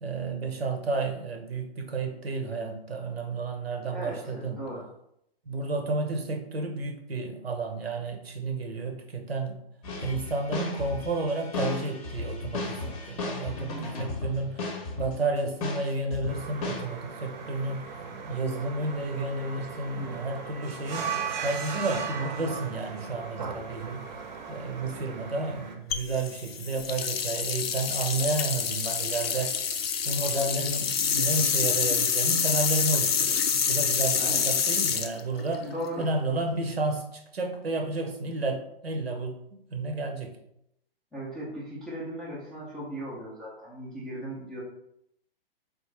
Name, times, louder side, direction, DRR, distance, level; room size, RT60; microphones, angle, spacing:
voice 1, 0.0-4.7 5.5-9.6 10.0-17.9 18.3-24.2 24.5-29.6 30.0-35.7 36.0-39.4 39.7-40.4, right 3 dB, 85° right, 3 dB, 0.8 m, -31 dB
voice 2, 3.8-4.9 20.0-20.4 34.2-34.5 35.6-36.1 41.1-44.6, right 1 dB, ahead, -9 dB, 0.3 m, -37 dB
sound 1, 9.8-15.3 15.6-16.8, left 3 dB, 35° left, 0.7 m, -35 dB
sound 2, 16.3-25.7, right 5 dB, 50° right, 0.6 m, -37 dB
sound 3, 25.9-36.1, left 7 dB, 75° left, 0.5 m, -27 dB
3.6 x 2.4 x 3.1 m, 0.76 s
figure-of-eight pair, 120°, 30 cm